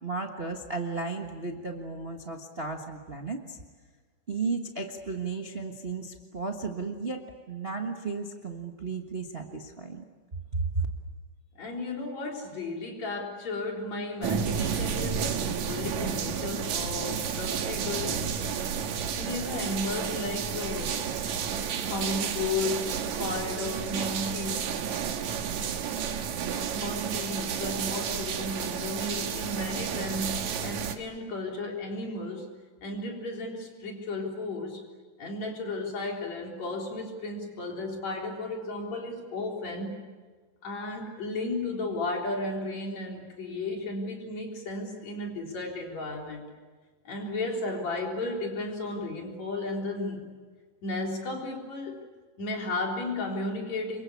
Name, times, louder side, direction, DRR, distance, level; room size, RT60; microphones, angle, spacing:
voice 1, 0.0-3.6 4.3-10.0 10.5-10.9, right 4 dB, 80° right, 3 dB, 0.5 m, -34 dB
voice 2, 11.6-18.6 19.1-20.9 21.8-24.7 26.7-32.5 32.8-34.8 35.2-40.0 40.6-46.4 47.0-50.3 50.8-52.0 52.4-54.0, left 2 dB, 55° left, 1 dB, 4.9 m, -34 dB
sound 1, 14.2-30.9, right 7 dB, 65° right, 2.7 m, -31 dB
27.5 x 23.5 x 8.5 m, 1.4 s
omnidirectional pair, 3.9 m